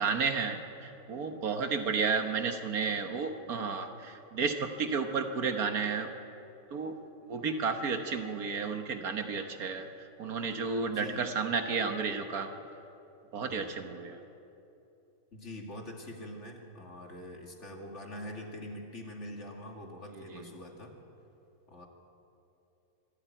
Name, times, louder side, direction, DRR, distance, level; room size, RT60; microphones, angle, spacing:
voice 1, 0.0-6.1 6.7-7.0 7.3-9.9 10.2-12.5 13.3-14.2 20.1-20.5, right 5 dB, 70° right, 6 dB, 1.7 m, -32 dB
voice 2, 10.9-11.3 11.5-11.6 13.5-13.8 15.3-20.9 21.7-21.9, left 1 dB, 45° left, 1 dB, 2.6 m, -44 dB
25.0 x 13.0 x 9.2 m, 2.8 s
omnidirectional pair, 1.6 m